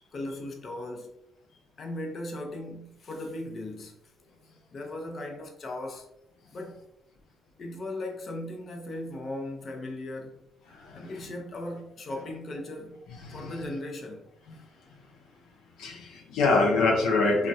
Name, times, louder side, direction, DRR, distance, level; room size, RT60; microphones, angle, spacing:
voice 1, 0.1-1.1 1.8-4.0 4.7-6.1 6.5-6.8 7.6-10.5 10.9-13.0 13.3-14.3, left 1 dB, 50° left, 0.6 m, -37 dB
voice 2, 10.7-11.1 13.2-13.5 14.5-14.6 15.8-17.5, left 3 dB, 90° left, 0.5 m, -25 dB
3.4 x 2.2 x 2.6 m
cardioid pair, 90°, 0 cm